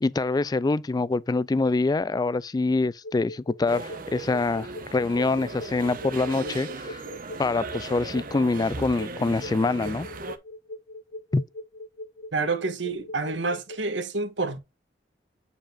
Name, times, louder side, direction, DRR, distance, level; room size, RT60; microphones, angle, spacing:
voice 1, 0.0-7.0 7.4-10.1 11.3-11.4, left 3 dB, 20° left, 0.3 m, -25 dB
sound 1, 3.0-13.8, left 1 dB, 70° left, 1.9 m, -40 dB
sound 2, 3.7-10.4, right 3 dB, 50° right, 1.0 m, -38 dB
voice 2, 12.3-14.6, right 3 dB, 85° right, 1.4 m, -28 dB
9.1 x 5.0 x 2.5 m
head